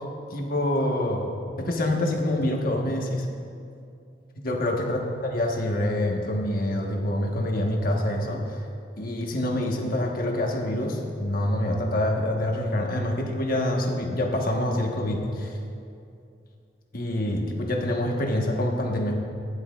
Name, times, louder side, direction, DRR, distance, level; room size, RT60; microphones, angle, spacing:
voice 1, 0.3-1.3 1.6-3.2 4.4-8.4 9.0-15.5 16.9-19.2, left 1 dB, 50° left, 0 dB, 1.3 m, -26 dB
16.0 x 10.5 x 2.4 m, 2.5 s
head